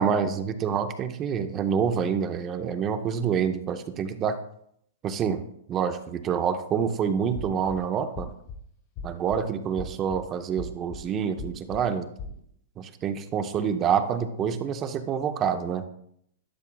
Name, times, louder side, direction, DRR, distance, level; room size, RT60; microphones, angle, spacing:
voice 1, 0.0-4.4 5.0-5.4 5.7-8.3 9.0-12.1 12.8-15.8, right 7 dB, 30° right, 9 dB, 0.6 m, -27 dB
sound 1, 7.3-7.8 8.1-8.6 9.0-9.4 9.8-10.2 10.6-11.0 11.4-11.8 12.2-12.4, left 4 dB, 45° left, 1.4 m, -37 dB
11.0 x 5.4 x 2.3 m, 0.71 s
hypercardioid pair, 130°, 0 cm